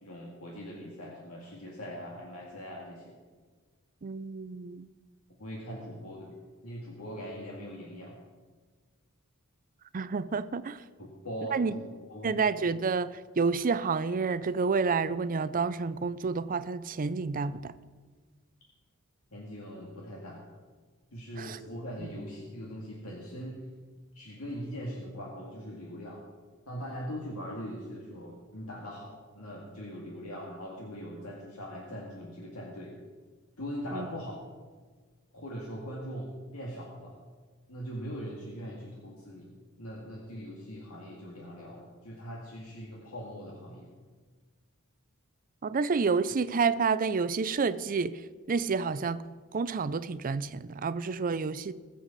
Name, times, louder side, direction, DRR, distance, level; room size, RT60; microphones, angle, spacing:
voice 1, 0.0-3.2 5.4-6.4 6.6-8.2 11.0-12.4 19.3-20.4 21.1-23.6 24.1-26.2 26.7-33.0 33.6-34.4 35.3-37.2 37.7-43.9, equal, 75° left, 2.0 m, -41 dB
voice 2, 4.0-4.9 9.9-10.8 11.5-11.8 12.2-17.7 21.4-21.6 22.0-22.1 33.9-34.1 45.6-48.2 48.5-49.2 49.5-51.7, right 5 dB, 40° right, 0.5 m, -29 dB
20.5 x 7.7 x 4.1 m
head